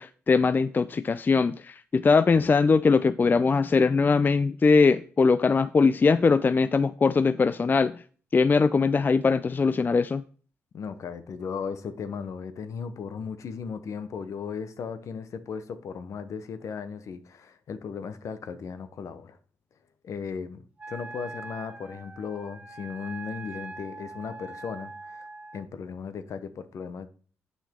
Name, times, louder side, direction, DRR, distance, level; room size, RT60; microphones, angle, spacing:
voice 1, 0.0-8.0 8.3-10.2, left 4 dB, 35° left, 0.4 m, -21 dB
voice 2, 10.7-19.4 20.0-20.6 20.9-25.3 25.5-27.1, left 6 dB, 65° left, 0.9 m, -36 dB
Wind instrument woodwind instrument, 20.8-25.7, right 3 dB, 25° right, 0.9 m, -42 dB
8.2 x 5.8 x 3.6 m
supercardioid pair, 55°, 6 cm